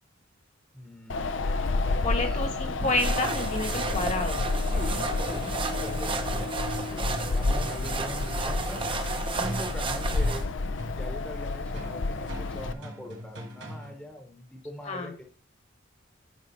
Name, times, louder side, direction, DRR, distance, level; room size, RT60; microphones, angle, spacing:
voice 1, 0.7-2.8 4.7-6.7 6.9-8.9 9.3-10.5 10.9-15.2, left 1 dB, 5° left, 2 dB, 1.0 m, -42 dB
Wind, 1.1-12.7, left 3 dB, 70° left, 0.5 m, -30 dB
voice 2, 2.0-4.4 14.9-15.1, left 2 dB, 35° left, 6 dB, 1.3 m, -29 dB
sound 1, 2.8-10.4, right 4 dB, 25° right, 0.7 m, -33 dB
sound 2, 2.8-14.1, equal, 70° right, 2.6 m, -42 dB
9.3 x 3.7 x 5.6 m, 0.42 s
head